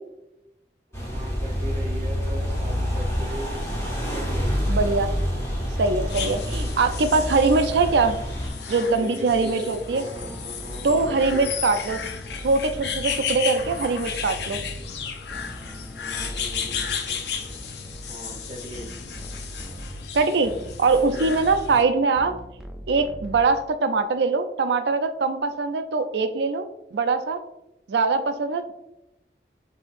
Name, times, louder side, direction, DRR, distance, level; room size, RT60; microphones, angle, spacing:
sound 1, 0.9-8.5, equal, 15° left, 0.9 m, -27 dB
voice 1, 1.1-3.6 4.1-4.6 8.7-11.5 15.9-17.7 18.1-18.9 21.0-21.4, equal, 35° right, 1 dB, 0.7 m, -39 dB
voice 2, 4.7-5.1 5.8-8.2 8.7-10.0 10.8-12.0 12.4-14.6 20.1-20.5 20.8-22.3 22.9-26.6 26.9-27.4 27.9-28.7, right 4 dB, 75° right, 9 dB, 0.4 m, -22 dB
sound 2, 6.1-21.8, left 7 dB, 70° left, 0.5 m, -34 dB
sound 3, 8.4-23.9, equal, 5° right, 0.3 m, -40 dB
7.0 x 2.8 x 2.5 m, 0.91 s
head